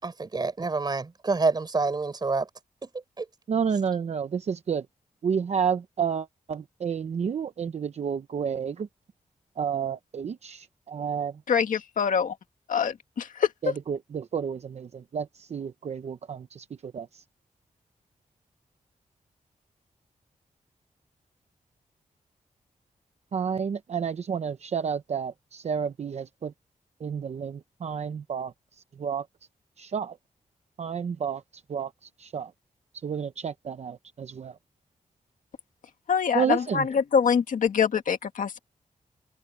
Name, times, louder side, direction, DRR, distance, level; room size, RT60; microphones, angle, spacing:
voice 1, 0.0-2.5 2.8-2.9 3.2-3.3, right 3 dB, 30° right, 6.6 m, -27 dB
voice 2, 3.5-4.8 5.2-8.9 9.6-11.3 13.6-17.1 23.3-26.5 27.0-28.5 29.0-29.2 29.8-30.2 30.8-31.4 31.7-31.9 32.2-32.5 33.0-34.5 36.3-36.9, right 7 dB, 55° right, 0.8 m, -30 dB
voice 3, 11.5-12.3 12.7-13.5 36.1-38.6, left 7 dB, 85° left, 1.9 m, -24 dB
wide cardioid pair, 170°, 13 cm